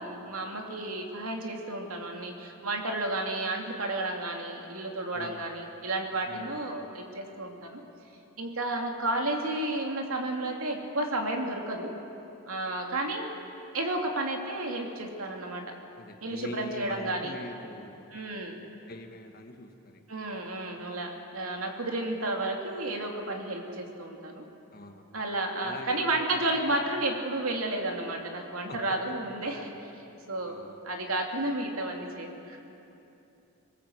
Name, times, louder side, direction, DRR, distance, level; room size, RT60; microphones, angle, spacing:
voice 1, 0.0-7.8 8.4-11.9 12.5-13.3 13.7-15.7 16.2-17.3 18.1-18.6 20.1-24.4 25.1-29.7 30.3-32.6, right 2 dB, 80° right, 2 dB, 2.7 m, -32 dB
voice 2, 6.3-6.9 15.9-18.2 18.9-20.1 24.7-25.3 25.6-26.2 26.5-27.1 28.7-28.8 29.4-29.5 30.5-31.1, left 1 dB, 45° left, 5 dB, 1.6 m, -44 dB
22.0 x 19.5 x 7.9 m, 2.9 s
head